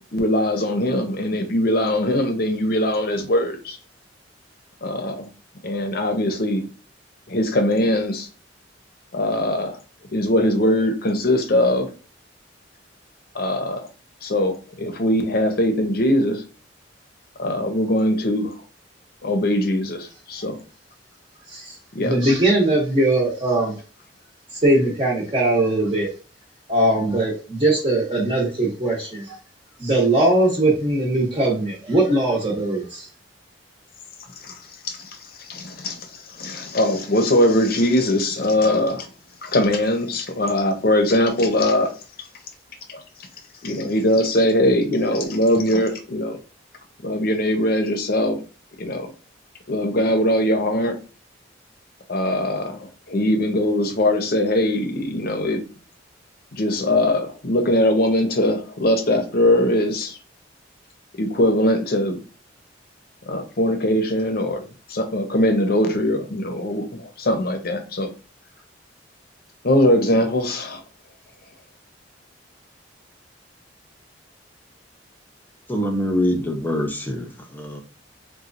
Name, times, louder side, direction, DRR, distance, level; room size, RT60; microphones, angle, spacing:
voice 1, 0.1-3.8 4.8-5.3 5.6-6.7 7.3-8.3 9.1-9.8 10.1-11.9 13.3-13.9 14.2-16.4 17.4-18.5 19.2-20.6 21.9-22.2 34.4-34.5 34.8-35.1 35.5-36.0 36.3-39.1 39.4-41.9 42.9-43.0 43.6-46.4 47.0-48.4 48.8-49.1 49.7-51.0 52.1-55.6 56.5-60.2 61.2-62.2 63.3-68.1 69.6-70.8, left 1 dB, 50° left, 0.7 m, -21 dB
voice 2, 22.0-23.7 24.6-26.1 26.7-29.2 29.8-33.0, right 1 dB, 30° right, 0.8 m, -20 dB
voice 3, 75.7-77.8, left 1 dB, 10° left, 0.6 m, -24 dB
4.2 x 2.2 x 2.5 m
head